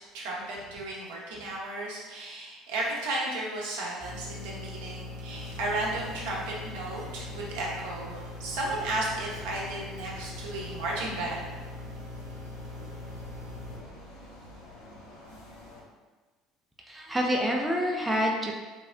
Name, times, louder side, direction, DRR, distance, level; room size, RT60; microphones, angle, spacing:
voice 1, 0.1-11.5, right 2 dB, 70° right, -4 dB, 0.7 m, -34 dB
sound 1, 4.0-13.8, left 2 dB, 50° right, 1.0 m, -41 dB
sound 2, 5.3-15.8, left 1 dB, 80° left, 0.6 m, -49 dB
voice 2, 16.9-18.6, equal, 10° right, -1 dB, 0.4 m, -27 dB
3.5 x 2.0 x 2.4 m, 1.3 s
hypercardioid pair, 65°, 0 cm